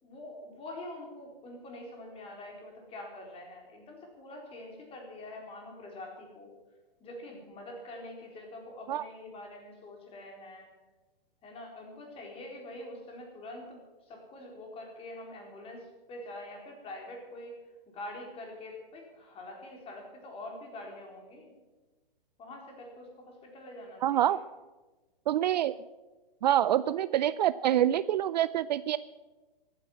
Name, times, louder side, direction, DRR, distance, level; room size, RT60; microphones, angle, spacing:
voice 1, 0.0-6.5 7.0-10.7 11.4-13.8 14.1-17.5 17.9-21.5 22.4-24.4, left 1 dB, 20° left, 1 dB, 4.0 m, -45 dB
voice 2, 24.0-24.4 25.3-25.8 26.4-29.0, right 12 dB, 45° right, 17 dB, 0.4 m, -26 dB
14.5 x 9.9 x 8.8 m, 1.2 s
hypercardioid pair, 140°, 29 cm